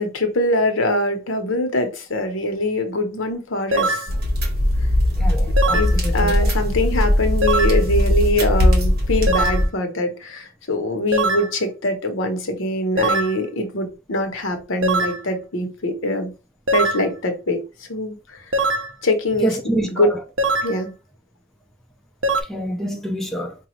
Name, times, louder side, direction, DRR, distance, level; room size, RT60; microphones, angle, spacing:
voice 1, 0.0-4.1 5.7-16.3 16.7-18.5 19.0-20.1 20.6-20.9, left 1 dB, 70° left, 0.9 m, -23 dB
sound 1, 3.7-4.1 5.6-5.9 7.4-7.8 9.3-9.6 11.1-11.5 13.0-13.4 14.8-15.2 16.7-17.1 18.5-18.9 20.4-20.8 22.2-22.4, right 2 dB, 65° right, 0.6 m, -21 dB
sound 2, 4.1-9.7, left 1 dB, 50° right, 1.2 m, -19 dB
voice 2, 5.2-6.5 19.4-20.2 22.5-23.5, right 1 dB, ahead, 0.4 m, -26 dB
4.8 x 2.4 x 3.0 m
head